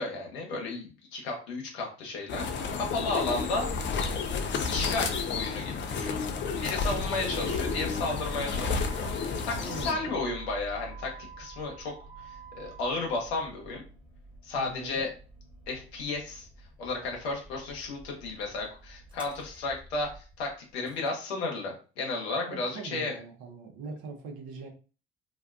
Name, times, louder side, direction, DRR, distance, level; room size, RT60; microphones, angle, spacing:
voice 1, 0.0-2.4 2.7-3.7 4.0-4.3 4.7-6.1 6.6-13.8 14.4-15.1 15.7-16.5 16.8-23.2, left 3 dB, 80° left, 0 dB, 0.9 m, -33 dB
sound 1, 2.3-9.9, left 5 dB, 35° left, 0.5 m, -31 dB
Motor vehicle (road), 6.5-21.1, right 3 dB, 15° right, 1.1 m, -47 dB
voice 2, 9.6-10.2 14.6-15.0 22.5-24.7, right 4 dB, 60° right, 2 dB, 0.8 m, -42 dB
2.6 x 2.2 x 2.4 m, 0.35 s
hypercardioid pair, 55°, 32 cm